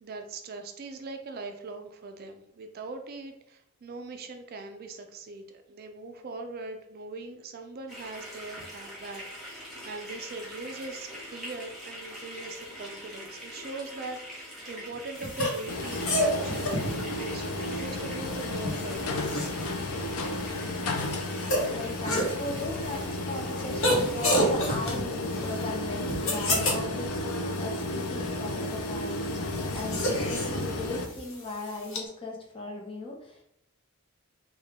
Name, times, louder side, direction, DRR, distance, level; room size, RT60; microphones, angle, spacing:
voice 1, 0.0-9.2 9.5-19.2, right 3 dB, 45° right, 5 dB, 0.4 m, -41 dB
sound 1, 7.9-24.5, equal, ahead, 1.1 m, -44 dB
sound 2, 15.2-32.0, equal, 65° left, 0.9 m, -32 dB
sound 3, 15.7-31.1, left 2 dB, 85° left, 0.5 m, -33 dB
voice 2, 21.7-27.2 27.6-33.4, left 2 dB, 25° left, 0 dB, 0.7 m, -37 dB
3.7 x 2.2 x 3.4 m, 0.79 s
head